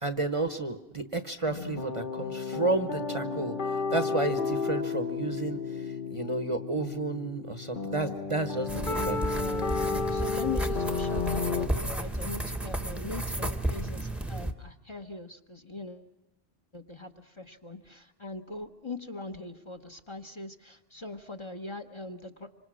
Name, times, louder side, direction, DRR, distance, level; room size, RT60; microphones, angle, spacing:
voice 1, 0.0-5.8 6.1-9.2, right 2 dB, 30° right, 9 dB, 1.0 m, -31 dB
sound 1, 1.5-11.7, left 4 dB, 50° left, 1.4 m, -32 dB
voice 2, 8.7-16.1 16.7-22.5, left 3 dB, 30° left, 7 dB, 1.1 m, -41 dB
sound 2, 8.7-14.5, right 1 dB, ahead, 1.0 m, -33 dB
26.5 x 25.5 x 6.2 m, 0.90 s
omnidirectional pair, 1.1 m